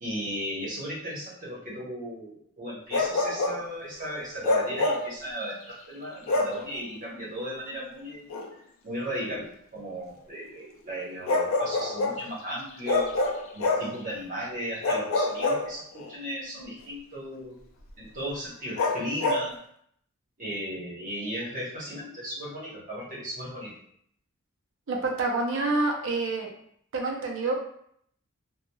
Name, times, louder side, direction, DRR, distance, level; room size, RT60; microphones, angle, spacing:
voice 1, 0.0-8.3 8.8-9.5 9.7-13.1 13.5-17.6 18.0-19.6 20.4-23.8, equal, 40° right, -6 dB, 1.0 m, -36 dB
Bark, 2.9-3.7 4.4-5.1 6.3-6.6 8.3-8.5 11.3-12.2 12.9-14.0 14.8-16.1 18.8-19.5, left 2 dB, 65° left, 0.4 m, -26 dB
voice 2, 24.9-26.5 26.9-27.6, right 3 dB, 60° right, 1 dB, 0.6 m, -27 dB
3.0 x 2.2 x 2.2 m, 0.66 s
head